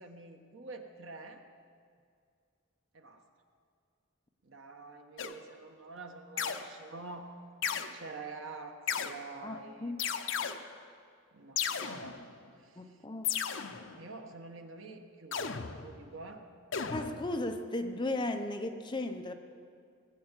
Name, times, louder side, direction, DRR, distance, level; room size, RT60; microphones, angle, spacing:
voice 1, 0.0-1.4 2.9-3.2 4.4-7.3 7.9-9.9 11.3-12.2 12.6-13.0 14.0-16.4, right 3 dB, 65° right, 4 dB, 1.3 m, -47 dB
sound 1, 5.2-5.6 6.4-6.9 7.6-7.9 8.9-9.4 10.0-10.9 11.6-12.5 13.2-14.1 15.3-16.2 16.7-17.6, left 7 dB, 65° left, 0.7 m, -35 dB
voice 2, 9.4-10.0 12.8-13.3 16.9-19.3, left 2 dB, 20° left, 6 dB, 0.7 m, -35 dB
19.5 x 8.6 x 7.5 m, 2.3 s
head